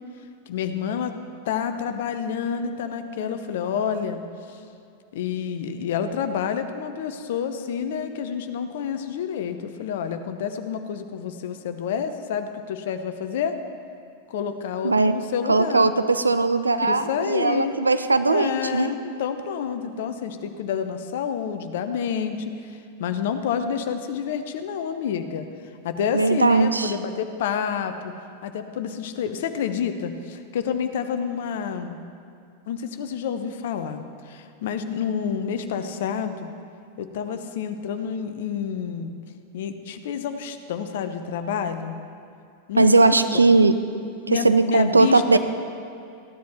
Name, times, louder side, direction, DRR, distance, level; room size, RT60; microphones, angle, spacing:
voice 1, 0.5-1.1 1.4-4.2 4.5-4.6 5.1-13.6 14.3-15.9 16.8-17.8 18.2-25.5 25.8-28.1 28.4-32.0 32.7-36.5 37.0-39.1 39.5-42.0 42.7-43.0 43.3-43.4 44.3-45.4, left 7 dB, 55° left, 9 dB, 0.8 m, -28 dB
voice 2, 15.5-18.9 26.1-26.9 42.8-43.7 44.4-45.4, right 3 dB, 80° right, 10 dB, 0.5 m, -19 dB
15.0 x 10.5 x 4.3 m, 2.6 s
figure-of-eight pair, 90°, 0 cm